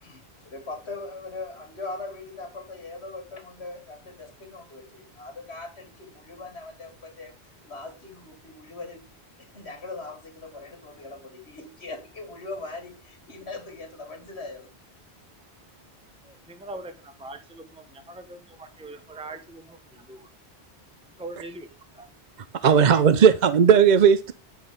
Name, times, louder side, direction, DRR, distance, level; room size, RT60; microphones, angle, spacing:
voice 1, 0.0-9.0 9.5-14.7, left 3 dB, 80° left, 2.1 m, -40 dB
voice 2, 16.2-20.3 21.2-21.7 21.9-22.1, right 2 dB, 5° right, 0.9 m, -42 dB
voice 3, 22.6-24.3, right 7 dB, 50° right, 0.7 m, -16 dB
10.0 x 5.7 x 5.1 m
omnidirectional pair, 1.1 m